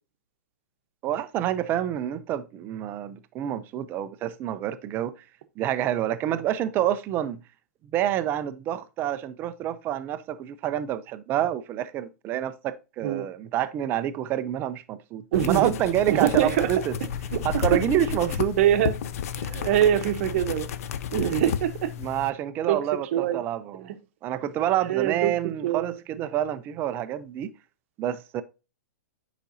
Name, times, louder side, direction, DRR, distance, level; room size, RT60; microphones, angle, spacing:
voice 1, 1.0-5.2 5.6-7.4 7.9-17.0 17.4-18.6 22.0-23.9 24.2-27.5 28.0-28.4, right 11 dB, 25° right, 0.4 m, -28 dB
sound 1, 15.3-22.3, left 8 dB, 60° left, 0.5 m, -32 dB
voice 2, 15.3-15.7 16.1-16.7 17.3-17.4 17.7-17.8 18.6-18.9 19.4-20.7 21.1-21.9 22.7-22.8 23.1-23.4 24.9-25.3 25.6-26.0, right 11 dB, 50° right, 0.8 m, -23 dB
8.2 x 5.0 x 2.6 m
hypercardioid pair, 150°, 9 cm